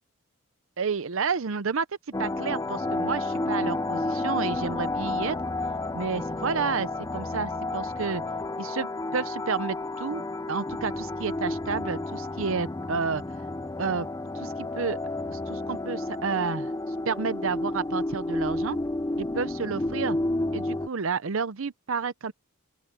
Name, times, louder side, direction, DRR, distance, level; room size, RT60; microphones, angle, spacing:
voice 1, 0.8-1.9 2.2-5.4 5.9-8.2 8.6-13.2 13.8-14.1 14.3-15.0 15.3-16.7 17.1-18.8 19.2-20.2 20.5-22.3, right 5 dB, 65° right, 0.6 m, -30 dB
sound 1, 2.1-20.9, left 2 dB, 15° left, 0.4 m, -31 dB
open air
head